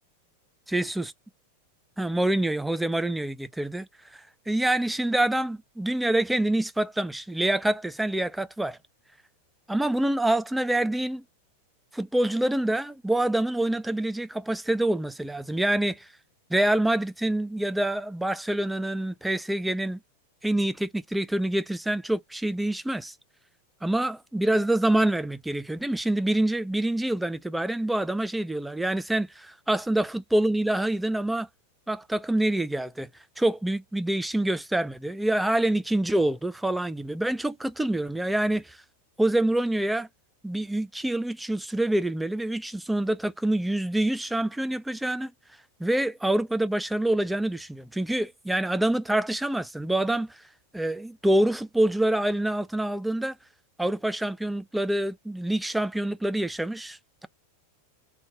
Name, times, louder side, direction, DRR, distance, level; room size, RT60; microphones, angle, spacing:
voice 1, 0.7-1.1 2.0-8.8 9.7-11.2 11.9-16.1 16.5-20.0 20.4-23.1 23.8-31.5 31.9-33.1 33.4-38.8 39.2-40.1 40.4-45.3 45.8-50.4 50.7-53.4 53.8-57.3, right 1 dB, 5° right, 0.4 m, -26 dB
3.8 x 2.2 x 3.7 m
figure-of-eight pair, 90°, 0 cm